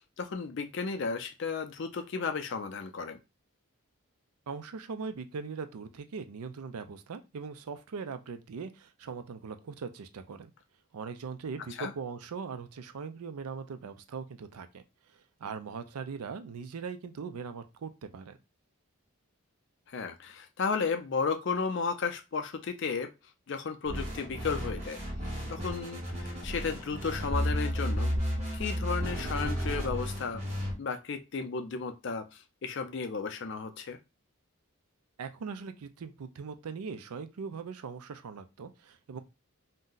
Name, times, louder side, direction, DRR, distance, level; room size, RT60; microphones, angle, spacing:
voice 1, 0.2-3.2 11.8-11.9 19.9-23.1 23.5-25.0 25.2-30.4 30.8-34.0, left 5 dB, 55° left, 7 dB, 0.4 m, -34 dB
voice 2, 4.5-10.5 10.9-14.8 15.1-18.4 35.2-39.2, right 5 dB, 90° right, 9 dB, 0.4 m, -40 dB
sound 1, 23.9-30.7, equal, 30° right, 1.1 m, -33 dB
2.6 x 2.1 x 3.7 m, 0.25 s
head